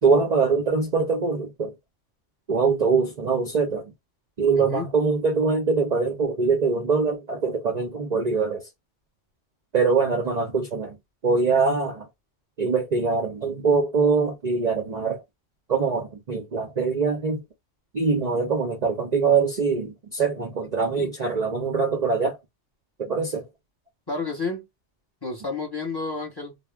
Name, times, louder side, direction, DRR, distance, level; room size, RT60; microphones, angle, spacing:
voice 1, 0.0-1.7 2.5-3.9 4.4-8.7 9.7-11.0 11.2-12.1 12.6-15.2 15.7-17.4 17.9-22.4 23.0-23.5, right 4 dB, 45° right, 0.6 m, -23 dB
voice 2, 4.5-4.9 18.2-18.5 21.0-21.1 24.1-24.7 25.2-26.6, left 3 dB, 20° left, 1.0 m, -31 dB
2.3 x 2.0 x 3.3 m
omnidirectional pair, 1.3 m